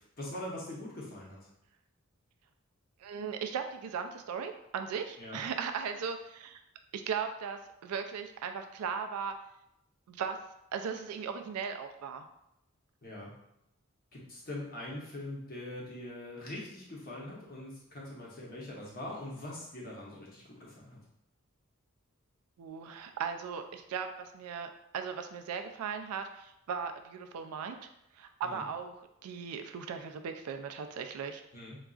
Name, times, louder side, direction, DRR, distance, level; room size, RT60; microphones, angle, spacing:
voice 1, 0.2-1.4 5.2-5.4 13.0-13.3 14.1-21.0 28.4-28.7 31.5-31.8, left 1 dB, 40° left, -4 dB, 0.8 m, -42 dB
voice 2, 3.0-6.6 6.9-9.3 10.1-10.4 10.7-12.3 22.6-27.8 28.1-31.4, right 6 dB, 85° right, 6 dB, 0.3 m, -37 dB
3.8 x 2.4 x 2.3 m, 0.82 s
head